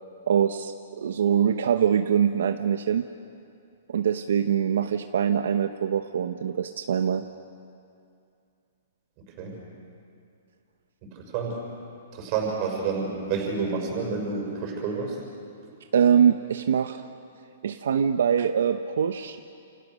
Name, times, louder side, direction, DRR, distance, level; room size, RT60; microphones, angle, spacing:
voice 1, 0.3-3.1 3.9-7.3 15.9-17.0 17.6-19.4, right 8 dB, 65° right, 8 dB, 0.9 m, -23 dB
voice 2, 11.0-11.6 12.1-15.2, right 5 dB, 25° right, 0 dB, 5.9 m, -29 dB
30.0 x 28.5 x 6.4 m, 2.5 s
hypercardioid pair, 180°, 0 cm